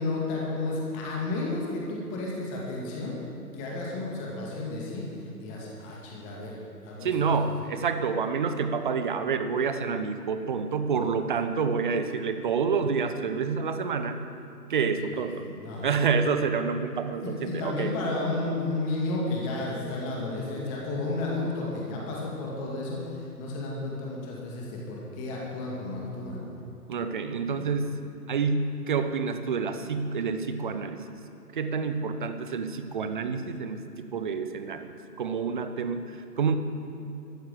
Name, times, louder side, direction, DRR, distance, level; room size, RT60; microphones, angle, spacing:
voice 1, 0.0-3.2 3.5-5.0 5.4-6.6 6.8-7.3 15.4-16.0 17.2-26.4 27.5-27.7, left 2 dB, 20° left, -3 dB, 2.1 m, -32 dB
voice 2, 7.0-14.2 14.7-15.4 15.8-17.9 26.9-28.0 28.3-31.0 31.5-34.9 35.2-36.6, right 5 dB, 30° right, 9 dB, 0.8 m, -28 dB
14.5 x 9.0 x 8.1 m, 3.0 s
figure-of-eight pair, 140°, 47 cm